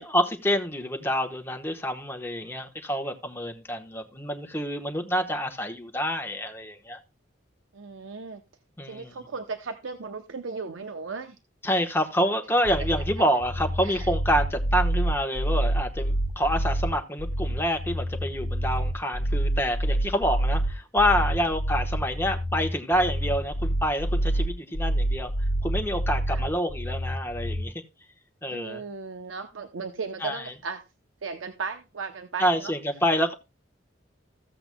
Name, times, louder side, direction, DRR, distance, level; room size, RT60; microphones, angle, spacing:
voice 1, 0.0-7.0 8.8-9.2 11.6-25.3 25.6-27.7 28.4-28.8 30.2-30.4 32.4-33.3, equal, 10° left, 1.1 m, -27 dB
voice 2, 7.7-8.4 8.8-11.4 13.8-14.1 21.4-21.6 26.3-26.4 28.5-30.8 31.2-32.7, right 4 dB, 90° right, 0.7 m, -36 dB
sound 1, 12.6-27.7, right 1 dB, 70° left, 1.1 m, -27 dB
15.0 x 7.8 x 2.2 m
head